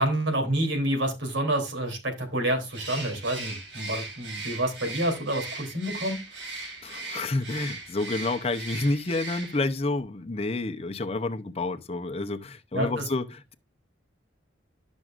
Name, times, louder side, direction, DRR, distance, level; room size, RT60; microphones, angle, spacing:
voice 1, 0.0-6.2 12.7-13.0, right 1 dB, 90° right, 3.1 m, -28 dB
Bird, 2.7-9.8, right 3 dB, 70° right, 2.7 m, -38 dB
voice 2, 6.8-13.5, left 2 dB, 35° left, 0.7 m, -29 dB
12.0 x 6.2 x 2.5 m
head